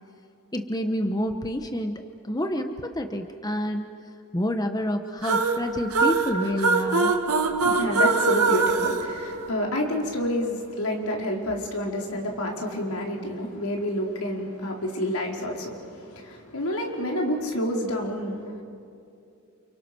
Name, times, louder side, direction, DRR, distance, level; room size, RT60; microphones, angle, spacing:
voice 1, 0.5-3.9 4.3-7.1, equal, 15° left, 5 dB, 1.0 m, -28 dB
sound 1, 5.2-10.0, right 3 dB, 80° right, 2.2 m, -23 dB
voice 2, 7.6-18.6, left 1 dB, 75° left, 0 dB, 4.7 m, -29 dB
30.0 x 29.5 x 6.3 m, 2.6 s
head